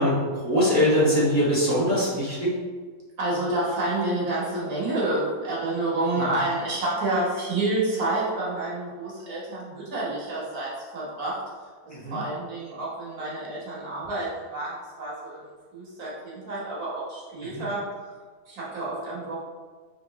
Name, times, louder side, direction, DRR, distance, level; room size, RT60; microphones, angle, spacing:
voice 1, 0.0-2.5 6.1-6.3 11.9-12.2 17.5-17.6, equal, 10° left, -9 dB, 1.4 m, -23 dB
voice 2, 3.2-11.4 11.8-18.1 18.5-19.4, right 2 dB, 70° right, -6 dB, 1.7 m, -29 dB
3.7 x 3.3 x 3.0 m, 1.5 s
omnidirectional pair, 1.7 m